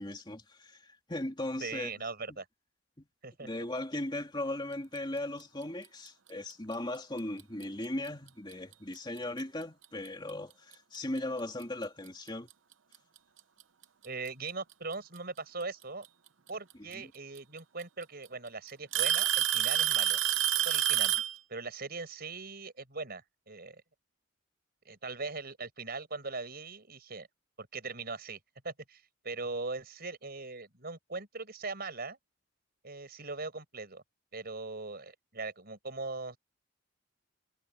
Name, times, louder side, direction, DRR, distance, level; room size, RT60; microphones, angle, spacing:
voice 1, 0.0-1.9 2.3-2.4 3.0-3.1 3.4-12.5 16.9-17.1, left 1 dB, 20° left, 2.8 m, -38 dB
voice 2, 1.6-2.5 3.2-3.5 14.0-16.1 16.5-20.2 20.6-21.1 21.5-23.8 24.9-27.3 27.6-28.4 28.6-32.2 32.8-34.0 34.3-36.4, right 3 dB, 50° right, 5.6 m, -40 dB
Alarm / Tick-tock, 7.4-7.6 8.5-8.6 9.4-9.5 11.2-11.3 12.5-12.6 13.8-14.3 16.0-16.1 17.4-17.5 17.8-18.3 18.9-21.4, right 11 dB, 65° right, 0.8 m, -28 dB
head